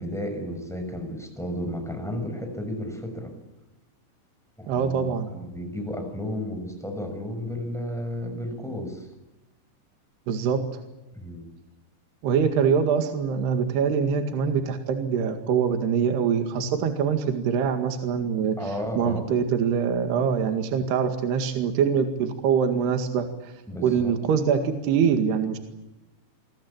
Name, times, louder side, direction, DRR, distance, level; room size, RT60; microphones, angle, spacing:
voice 1, 0.0-3.3 4.6-5.0 5.3-9.1 11.1-11.5 18.6-19.3 23.7-24.1, left 1 dB, ahead, 5 dB, 6.0 m, -33 dB
voice 2, 4.7-5.3 10.3-10.6 12.2-23.5 23.8-25.6, right 7 dB, 70° right, 6 dB, 4.0 m, -24 dB
28.0 x 22.5 x 8.8 m, 1.0 s
omnidirectional pair, 5.1 m